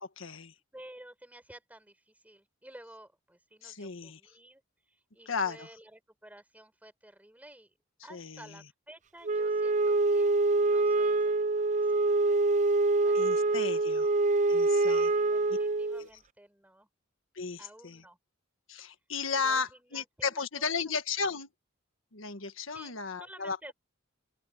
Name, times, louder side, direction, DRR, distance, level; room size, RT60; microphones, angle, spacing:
voice 1, 0.0-0.5 3.6-4.2 5.3-5.7 8.1-8.5 13.1-14.1 14.5-15.1 16.0-16.1 17.4-18.0 18.7-21.5 22.1-23.7, left 5 dB, 75° left, 1.6 m, -34 dB
voice 2, 0.7-4.6 4.9-7.7 8.0-12.7 13.0-16.9 17.6-18.2 19.4-20.9 22.7-23.7, right 1 dB, 10° right, 7.2 m, -53 dB
Wind instrument woodwind instrument, 9.2-16.0, right 3 dB, 35° right, 0.5 m, -25 dB
open air
head